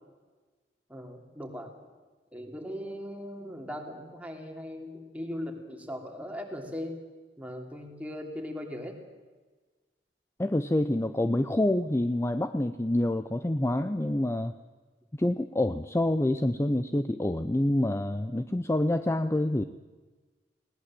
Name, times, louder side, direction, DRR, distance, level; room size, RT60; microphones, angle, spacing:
voice 1, 0.9-1.7 2.3-7.0 7.4-9.0, equal, 10° right, 2 dB, 2.9 m, -39 dB
voice 2, 10.4-14.5 15.2-19.6, left 1 dB, 15° left, 10 dB, 0.6 m, -27 dB
20.0 x 18.0 x 7.6 m, 1.3 s
head